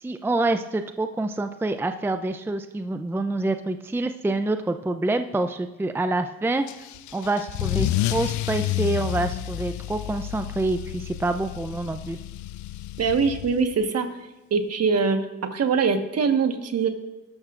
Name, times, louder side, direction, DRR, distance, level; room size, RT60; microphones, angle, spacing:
voice 1, 0.0-6.6 7.1-12.2, right 2 dB, 10° right, 8 dB, 0.5 m, -27 dB
Car / Engine starting / Accelerating revving vroom, 6.7-13.8, left 15 dB, 75° left, 0.5 m, -30 dB
voice 2, 13.0-14.1 14.5-15.2 15.5-16.9, right 5 dB, 55° right, 5 dB, 1.5 m, -22 dB
21.0 x 12.0 x 2.5 m, 1.0 s
cardioid pair, 90°, 30 cm